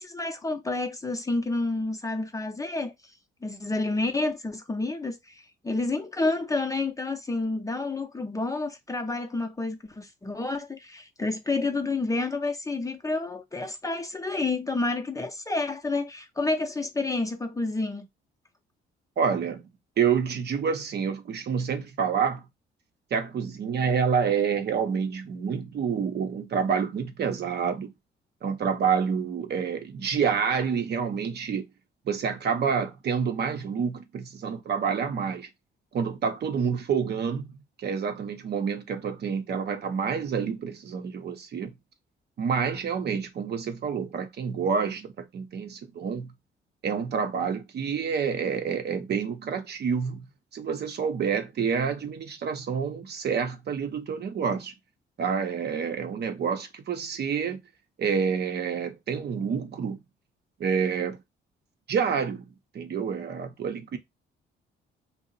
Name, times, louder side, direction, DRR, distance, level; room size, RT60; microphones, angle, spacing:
voice 1, 0.0-2.9 3.4-18.1, left 3 dB, 15° left, 0.6 m, -29 dB
voice 2, 19.2-19.7 20.0-22.4 23.1-27.9 28.4-31.6 32.1-35.5 35.9-37.5 37.8-41.7 42.4-46.3 46.8-54.7 55.2-57.6 58.0-60.0 60.6-61.2 61.9-62.4 62.7-64.0, right 6 dB, 55° right, 0.7 m, -28 dB
2.7 x 2.0 x 3.9 m
cardioid pair, 90°, 20 cm